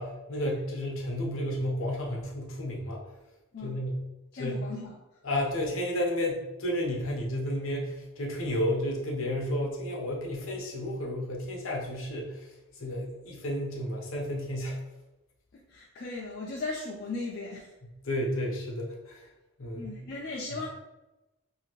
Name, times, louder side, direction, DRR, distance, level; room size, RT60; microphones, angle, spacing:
voice 1, 0.0-3.0 3.6-3.9 4.4-4.6 5.2-14.8 18.0-19.3 19.6-20.0, left 1 dB, 70° left, -1 dB, 0.7 m, -32 dB
voice 2, 3.5-3.8 4.3-5.0 15.5-17.7 19.8-20.7, left 3 dB, 50° left, -3 dB, 0.4 m, -37 dB
2.7 x 2.5 x 2.9 m, 1.0 s
head